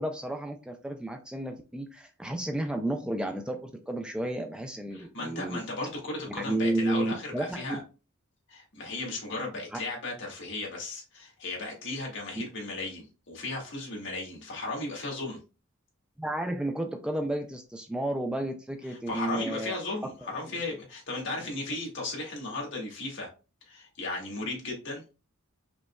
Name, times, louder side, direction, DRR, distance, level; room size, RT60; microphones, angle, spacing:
voice 1, 0.0-5.6 6.3-7.8 9.7-9.8 16.2-19.7, right 1 dB, 5° right, 4 dB, 0.3 m, -32 dB
voice 2, 4.9-7.8 8.5-15.4 19.1-23.3 23.7-25.0, left 2 dB, 60° left, -1 dB, 1.7 m, -35 dB
5.1 x 3.3 x 2.2 m, 0.31 s
head